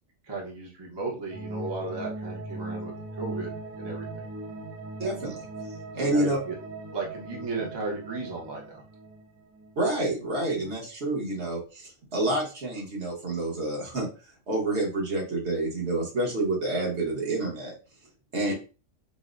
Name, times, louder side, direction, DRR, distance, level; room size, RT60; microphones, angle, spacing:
voice 1, 0.2-4.3 6.0-6.6 6.9-8.8 18.4-18.5, right 3 dB, 25° right, -2 dB, 0.6 m, -35 dB
sound 1, 1.3-9.8 10.2-10.3 10.5-10.7, right 2 dB, 80° right, 1.1 m, -39 dB
voice 2, 5.0-5.4 5.9-6.4 9.8-14.1 14.5-17.7 18.3-18.5, right 2 dB, 60° right, -2 dB, 1.3 m, -28 dB
4.0 x 2.0 x 2.4 m, 0.33 s
omnidirectional pair, 1.4 m